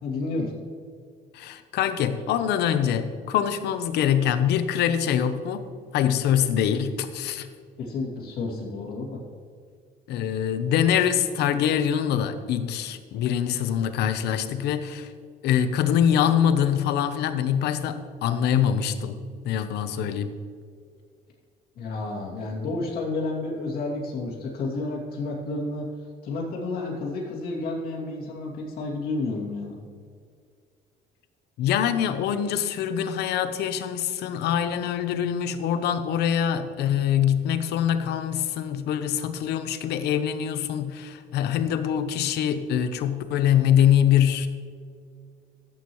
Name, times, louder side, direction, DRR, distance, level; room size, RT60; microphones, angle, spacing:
voice 1, 0.0-0.5 7.8-9.2 21.8-25.9 26.2-29.8, left 2 dB, 65° left, -3 dB, 2.7 m, -31 dB
voice 2, 1.3-5.6 5.9-7.5 10.1-15.1 15.4-19.2 19.4-20.3 31.6-44.5, left 9 dB, 80° left, 10 dB, 0.9 m, -24 dB
13.5 x 8.8 x 3.1 m, 2.1 s
cardioid pair, 110°, 17 cm